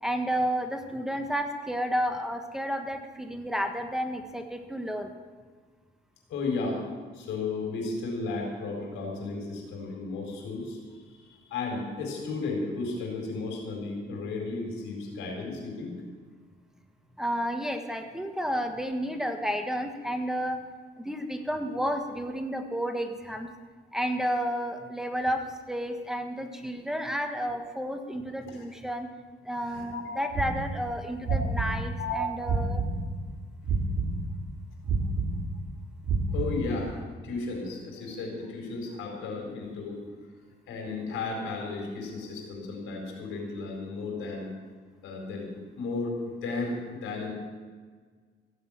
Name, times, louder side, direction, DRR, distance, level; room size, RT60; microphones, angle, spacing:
voice 1, 0.0-5.1 17.2-20.6 21.0-23.5 23.9-29.1 29.4-32.8, equal, ahead, 4 dB, 1.5 m, -31 dB
voice 2, 6.3-6.8 7.1-10.8 11.5-16.0 29.7-30.3 31.3-31.4 32.0-32.2 36.3-40.0 40.7-44.5 45.0-45.5 45.8-47.3, left 3 dB, 90° left, 1 dB, 4.6 m, -34 dB
sound 1, 30.3-33.3 33.6-37.0, right 3 dB, 60° right, 2.8 m, -29 dB
16.0 x 8.2 x 8.8 m, 1.5 s
cardioid pair, 90°, 20 cm